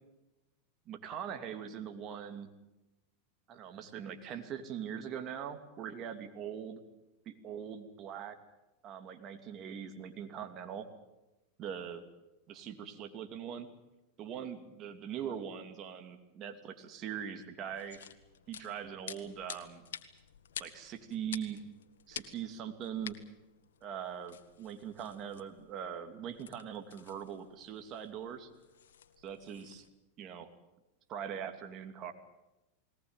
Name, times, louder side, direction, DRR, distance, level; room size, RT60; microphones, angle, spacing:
voice 1, 0.9-2.5 3.5-6.8 7.3-8.4 8.8-10.9 11.6-12.0 12.5-13.7 14.2-18.1 18.5-19.8 20.6-21.6 22.1-23.2 23.8-28.5 29.2-29.8 30.2-30.5 31.1-32.1, right 8 dB, 40° right, 7 dB, 2.7 m, -42 dB
sound 1, 17.7-29.9, left 9 dB, 90° left, 1.7 m, -50 dB
20.5 x 19.0 x 9.1 m, 1.0 s
supercardioid pair, 125°, 0 cm